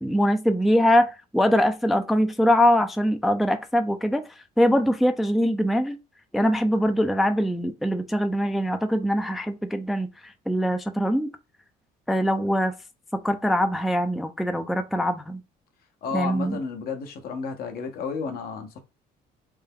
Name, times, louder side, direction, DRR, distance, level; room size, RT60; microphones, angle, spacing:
voice 1, 0.0-4.2 4.6-6.0 6.3-11.3 12.1-12.7 13.2-15.4 16.1-16.6, equal, ahead, 0.3 m, -22 dB
voice 2, 16.0-18.8, left 5 dB, 65° left, 0.9 m, -32 dB
3.4 x 2.2 x 3.5 m
cardioid pair, 110°, 17 cm